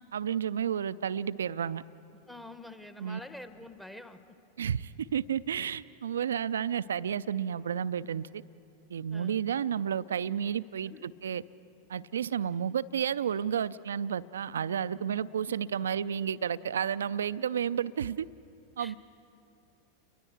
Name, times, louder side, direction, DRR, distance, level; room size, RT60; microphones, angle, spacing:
voice 1, 0.1-1.8 3.0-3.2 4.6-8.4 8.9-11.4 11.9-18.3 18.8-18.9, right 8 dB, 65° right, 17 dB, 0.4 m, -31 dB
voice 2, 2.3-4.2 9.1-9.5 10.9-11.1 18.8-19.0, left 1 dB, 5° left, 9 dB, 1.0 m, -47 dB
30.0 x 22.5 x 4.6 m, 2.7 s
figure-of-eight pair, 90°, 0 cm